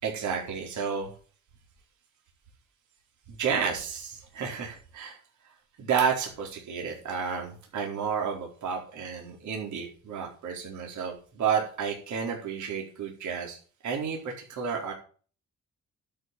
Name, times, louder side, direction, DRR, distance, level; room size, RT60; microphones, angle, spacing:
voice 1, 0.0-1.1 3.4-5.2 5.8-13.6 13.8-14.9, right 6 dB, 75° right, 0 dB, 4.4 m, -31 dB
12.0 x 6.7 x 9.2 m, 0.41 s
cardioid pair, 90°, 30 cm